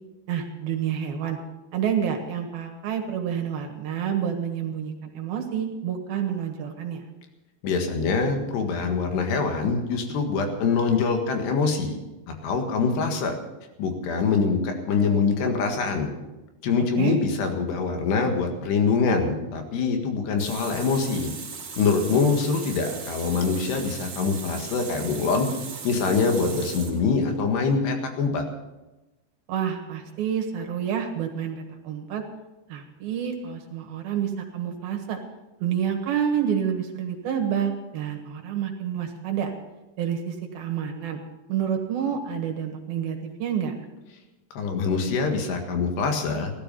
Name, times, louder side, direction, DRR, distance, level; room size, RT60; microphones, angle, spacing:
voice 1, 0.3-1.4 1.7-7.0 17.0-17.2 29.5-32.2 32.7-35.2 35.6-39.5 40.0-41.2 41.5-43.7, right 8 dB, 70° right, 3 dB, 3.2 m, -28 dB
voice 2, 7.6-11.9 12.4-13.3 13.8-16.1 16.6-21.3 21.8-25.5 25.8-28.4 44.5-46.5, left 4 dB, 80° left, 4 dB, 3.8 m, -24 dB
Water tap faucet, 20.4-27.4, right 5 dB, 40° right, 2.8 m, -38 dB
16.5 x 13.0 x 5.4 m, 1.0 s
omnidirectional pair, 4.8 m